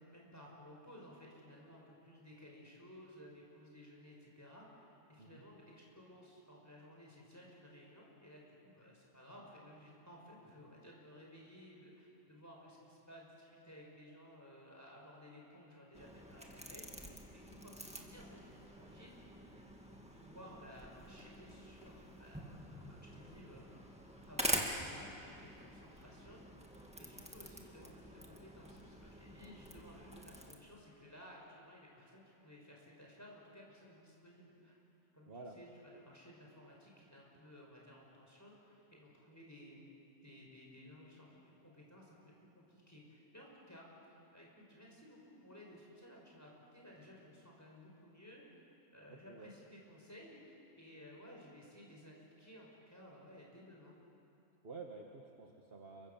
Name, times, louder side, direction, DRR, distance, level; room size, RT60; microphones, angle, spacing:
voice 1, 0.0-19.2 19.9-23.9 24.2-26.4 27.0-34.8 35.1-35.3 35.5-39.9 40.2-48.4 48.9-54.0, equal, 10° left, -3 dB, 5.9 m, -57 dB
sound 1, 15.9-30.5, equal, 5° right, 2.1 m, -46 dB
voice 2, 49.1-49.5 54.6-56.1, right 4 dB, 45° right, 1 dB, 1.7 m, -50 dB
29.0 x 24.0 x 7.2 m, 2.9 s
omnidirectional pair, 1.5 m